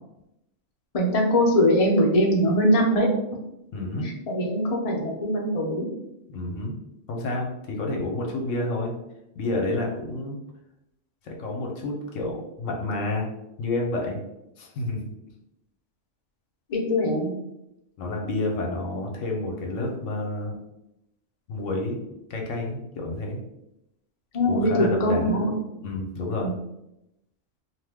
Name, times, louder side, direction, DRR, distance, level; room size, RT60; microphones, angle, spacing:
voice 1, 0.9-3.1 4.3-5.9 16.7-17.3 24.3-25.5 26.4-26.5, equal, 40° left, -1 dB, 0.5 m, -22 dB
voice 2, 3.7-4.1 6.3-6.7 7.1-8.9 9.4-10.4 11.2-13.3 13.6-14.2 14.6-15.0 18.0-20.6 21.5-22.0 22.3-23.4 24.4-25.3 25.8-26.5, left 2 dB, 80° left, 0 dB, 1.0 m, -29 dB
2.7 x 2.1 x 3.3 m, 0.86 s
omnidirectional pair, 1.4 m